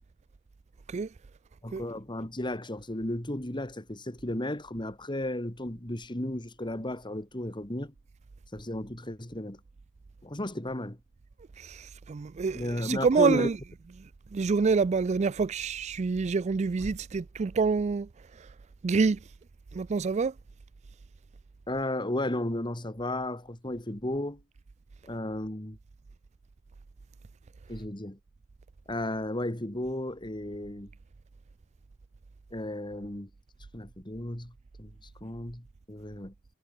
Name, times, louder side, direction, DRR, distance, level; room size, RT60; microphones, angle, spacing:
voice 1, 1.6-7.9 8.5-9.6 10.2-11.0 12.5-13.5 21.7-24.4 25.1-25.8 27.7-28.2 28.9-30.9 32.5-33.3 33.7-34.5 34.8-34.9 35.2-36.3, left 1 dB, 25° left, 2.4 m, -34 dB
sound 1, 7.0-20.3, equal, 65° right, 5.7 m, -58 dB
voice 2, 11.6-13.6 14.3-18.1 18.8-19.2 19.7-20.3, right 4 dB, 35° right, 0.4 m, -27 dB
head